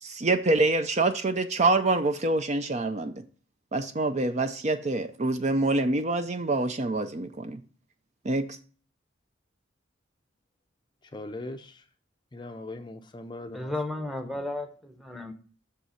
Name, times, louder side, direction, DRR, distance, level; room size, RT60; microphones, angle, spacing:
voice 1, 0.0-3.2 3.7-7.6 8.2-8.6, right 2 dB, 35° right, 0.5 m, -26 dB
voice 2, 11.1-11.8 12.3-13.7 14.3-14.4, left 2 dB, 25° left, 0.5 m, -40 dB
voice 3, 13.5-15.3, left 2 dB, ahead, 0.9 m, -34 dB
6.6 x 5.5 x 5.6 m
head